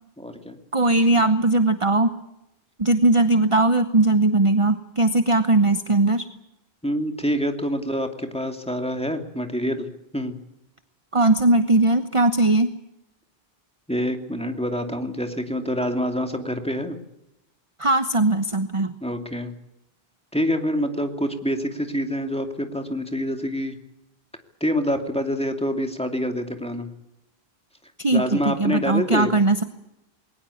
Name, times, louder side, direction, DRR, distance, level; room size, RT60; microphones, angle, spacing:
voice 1, 0.2-0.6 6.8-9.9 10.1-10.4 13.9-17.0 19.0-19.5 20.3-23.8 24.6-26.9 28.1-29.3, equal, 5° left, 5 dB, 2.6 m, -26 dB
voice 2, 0.7-2.1 2.8-6.3 11.1-12.8 17.8-18.9 28.0-29.6, right 2 dB, 30° right, 10 dB, 1.0 m, -19 dB
21.5 x 19.5 x 8.6 m, 0.86 s
omnidirectional pair, 1.0 m